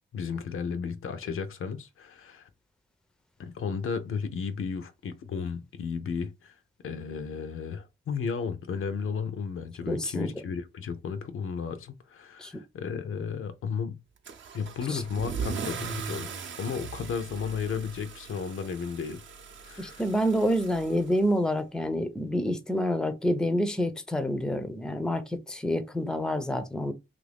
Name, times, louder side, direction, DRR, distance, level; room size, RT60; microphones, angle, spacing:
voice 1, 0.1-2.5 3.4-6.6 6.8-14.0 14.5-16.3 16.6-19.2 19.6-20.0, left 6 dB, 85° left, 0.5 m, -34 dB
voice 2, 9.9-10.3 12.4-12.6 14.9-15.0 19.8-26.9, equal, 5° left, 0.4 m, -28 dB
Car / Engine starting / Accelerating revving vroom, 14.2-21.6, right 6 dB, 65° right, 0.6 m, -39 dB
3.0 x 2.5 x 3.3 m
wide cardioid pair, 120°, 21 cm